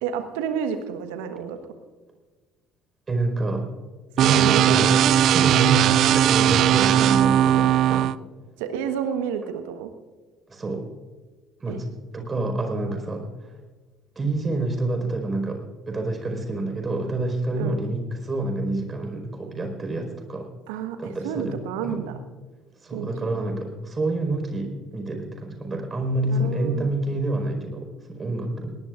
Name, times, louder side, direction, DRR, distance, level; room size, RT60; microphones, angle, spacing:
voice 1, 0.0-1.6 4.2-4.8 5.0-5.2 6.9-8.0 8.6-9.9 11.7-11.8 17.6-17.8 20.7-22.2 22.9-23.5 26.3-26.9, right 8 dB, 70° right, 8 dB, 1.3 m, -30 dB
voice 2, 3.1-3.6 4.2-8.1 10.5-10.8 11.6-13.6 14.1-15.6 15.9-20.5 21.0-21.6 21.8-22.1 22.8-28.8, right 2 dB, 30° right, 4 dB, 4.9 m, -28 dB
sound 1, 4.2-8.1, right 11 dB, 55° right, 0.3 m, -18 dB
21.0 x 18.5 x 2.5 m, 1.3 s
figure-of-eight pair, 55°, 0 cm